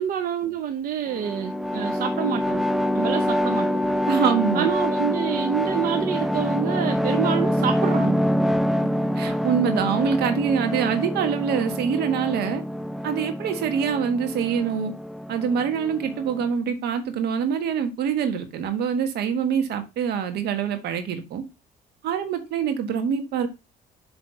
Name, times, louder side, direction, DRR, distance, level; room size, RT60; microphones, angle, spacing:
voice 1, 0.0-2.6 2.9-3.9 4.5-8.2, right 9 dB, 60° right, 0.7 m, -27 dB
sound 1, 1.1-16.5, equal, ahead, 0.3 m, -26 dB
voice 2, 4.1-4.7 9.2-12.6 13.0-14.9 15.3-21.4 22.0-23.5, right 7 dB, 75° right, 1.5 m, -25 dB
7.1 x 3.3 x 5.6 m
cardioid pair, 110°, 17 cm